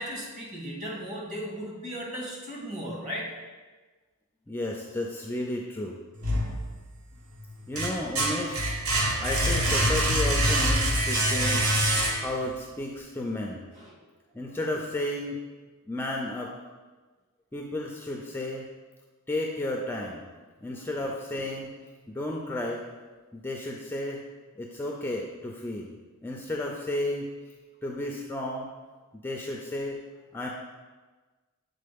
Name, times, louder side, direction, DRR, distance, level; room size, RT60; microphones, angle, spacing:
voice 1, 0.0-3.3 13.7-13.9, equal, 35° right, -4 dB, 1.8 m, -36 dB
voice 2, 4.5-5.9 7.7-8.7 9.2-11.8 12.2-13.6 14.3-15.4 15.9-16.5 17.5-18.7 19.3-20.2 20.6-21.8 22.1-22.8 23.3-24.2 24.6-25.9 26.2-27.3 27.8-28.7 29.2-30.0 30.3-30.5, left 1 dB, 10° left, 0 dB, 0.4 m, -32 dB
sound 1, 6.2-7.1 7.5-12.5, right 1 dB, 85° right, 1.0 m, -25 dB
7.6 x 4.1 x 3.5 m, 1.3 s
head